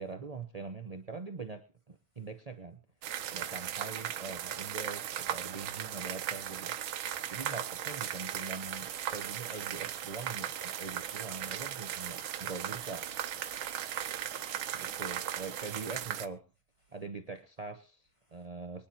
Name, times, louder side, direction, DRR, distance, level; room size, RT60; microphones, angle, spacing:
voice 1, 0.0-2.8 3.3-6.7 7.3-13.0 14.7-16.4 16.9-18.0 18.3-18.9, right 4 dB, 35° right, 0.6 m, -43 dB
sound 1, 3.0-16.3, right 10 dB, 90° right, 1.7 m, -37 dB
voice 2, 3.1-4.4 13.5-15.6 16.8-17.0 18.2-18.5, equal, 15° left, 2.6 m, -66 dB
sound 2, 8.0-15.8, left 1 dB, 85° left, 6.6 m, -58 dB
24.0 x 10.5 x 2.9 m
omnidirectional pair, 2.2 m